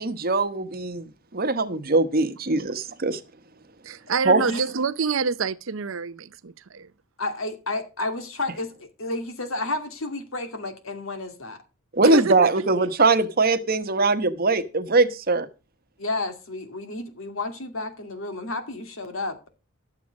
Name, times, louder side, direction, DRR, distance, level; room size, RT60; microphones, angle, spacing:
voice 1, 0.0-3.2 4.2-4.4 11.9-15.5, right 3 dB, 45° right, 1.1 m, -21 dB
voice 2, 3.8-6.9 12.0-12.5 12.8-12.9, right 5 dB, 65° right, 0.7 m, -27 dB
voice 3, 7.2-11.6 12.0-12.1 16.0-19.5, left 2 dB, 70° left, 2.4 m, -31 dB
12.0 x 7.4 x 6.3 m
head